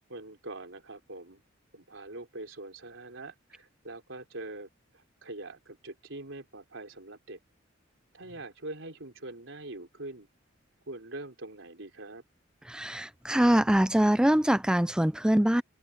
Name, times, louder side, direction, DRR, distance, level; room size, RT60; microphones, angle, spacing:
voice 1, 0.1-1.4 1.7-4.7 4.9-7.4 8.1-10.3 10.9-12.2, right 2 dB, 70° right, 4.2 m, -43 dB
voice 2, 12.7-15.6, right 1 dB, 5° right, 0.4 m, -24 dB
head